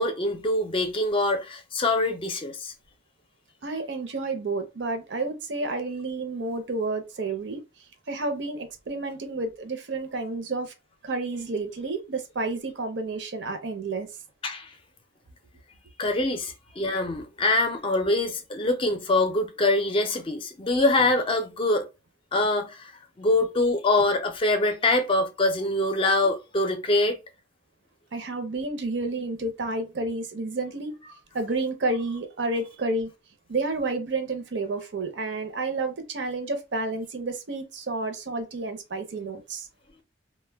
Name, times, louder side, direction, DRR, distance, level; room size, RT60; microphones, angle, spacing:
voice 1, 0.0-2.7 14.4-14.7 16.0-21.9 22.3-22.9 23.2-27.2, left 2 dB, 30° left, 0.4 m, -24 dB
voice 2, 3.6-7.6 8.1-10.7 11.0-14.1 28.1-31.0 31.3-33.1 33.5-39.7, right 3 dB, 70° right, 0.6 m, -30 dB
2.1 x 2.1 x 3.3 m
head